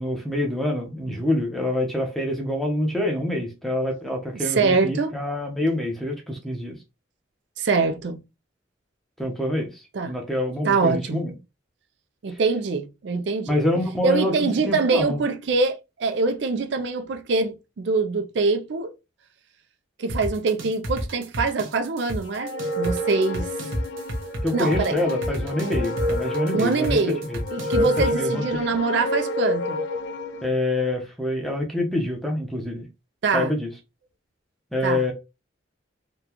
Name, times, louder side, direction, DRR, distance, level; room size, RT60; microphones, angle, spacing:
voice 1, 0.0-6.8 9.2-11.3 13.5-15.2 24.4-27.0 27.3-27.4 27.7-28.4 30.4-32.8 33.3-33.7 34.7-35.1, left 1 dB, ahead, 0.7 m, -26 dB
voice 2, 4.3-5.1 7.6-8.2 9.9-10.2 10.6-11.3 12.2-13.6 14.0-18.9 20.0-23.5 24.5-25.0 26.5-27.2 27.5-29.8 33.2-33.5 34.8-35.0, right 4 dB, 60° right, 0.4 m, -24 dB
sound 1, 20.1-28.1, equal, 85° right, 0.9 m, -29 dB
sound 2, 22.3-30.5, left 1 dB, 60° left, 0.4 m, -29 dB
3.7 x 2.2 x 2.9 m
head